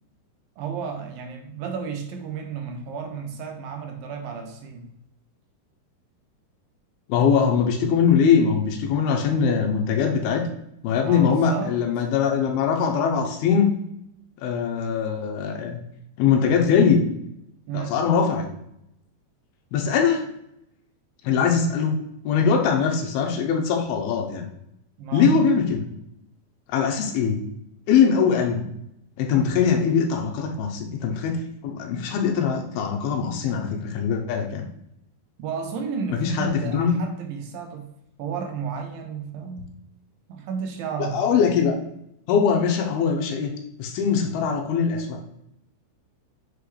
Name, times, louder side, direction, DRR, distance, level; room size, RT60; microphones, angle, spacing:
voice 1, 0.6-4.9 11.0-11.8 17.7-18.0 25.0-25.4 35.4-37.9 38.2-39.7 40.3-41.6, right 6 dB, 75° right, 4 dB, 2.4 m, -32 dB
voice 2, 7.1-10.4 10.8-13.7 14.4-15.8 16.2-17.0 17.7-18.5 19.7-20.2 21.2-22.0 22.2-24.5 25.1-25.8 26.7-27.4 27.9-28.7 29.2-34.7 36.1-37.0 41.0-41.7 42.3-43.5 43.8-45.2, left 6 dB, 90° left, 2 dB, 2.7 m, -22 dB
6.7 x 5.0 x 3.2 m, 0.80 s
omnidirectional pair, 4.4 m